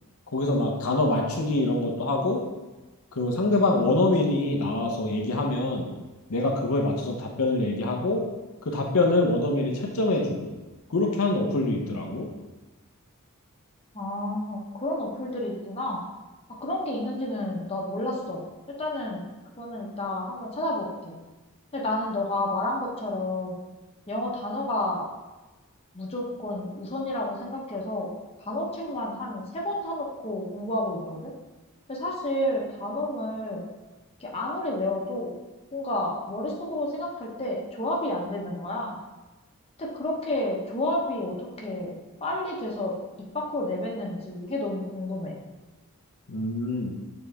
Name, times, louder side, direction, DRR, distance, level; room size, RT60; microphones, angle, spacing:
voice 1, 0.3-2.4 3.1-5.9 6.3-8.3 8.6-10.5 10.9-12.3 46.3-46.9, left 2 dB, 75° left, 1 dB, 0.8 m, -25 dB
voice 2, 13.9-16.0 16.6-18.4 18.8-19.2 19.6-21.2 21.7-23.6 24.1-25.0 25.9-28.1 28.4-31.3 31.9-33.6 34.2-35.3 35.7-38.9 39.8-42.9 43.3-45.4, left 1 dB, 25° left, -3 dB, 1.0 m, -30 dB
7.0 x 4.0 x 3.4 m, 1.2 s
head